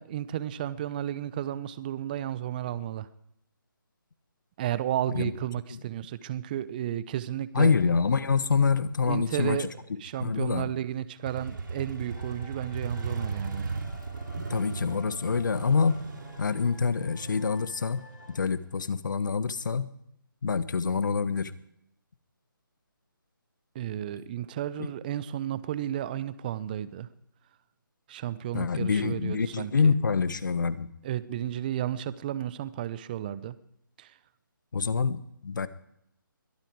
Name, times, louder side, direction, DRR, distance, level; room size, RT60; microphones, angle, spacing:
voice 1, 0.0-3.1 4.6-7.7 9.1-9.7 10.0-13.8 23.7-27.1 28.1-29.9 31.0-33.6 34.0-34.1, right 11 dB, 25° right, 16 dB, 0.8 m, -33 dB
voice 2, 7.5-9.7 10.2-10.7 14.4-16.0 16.4-18.0 18.3-19.9 20.4-21.5 28.5-30.9 34.7-35.7, left 5 dB, 60° left, 14 dB, 1.3 m, -26 dB
Motorcycle, 11.3-18.9, right 4 dB, 60° right, 2.7 m, -37 dB
sound 1, 12.1-18.3, left 3 dB, 30° left, 7.2 m, -52 dB
22.0 x 13.0 x 4.8 m, 0.75 s
figure-of-eight pair, 155°, 12 cm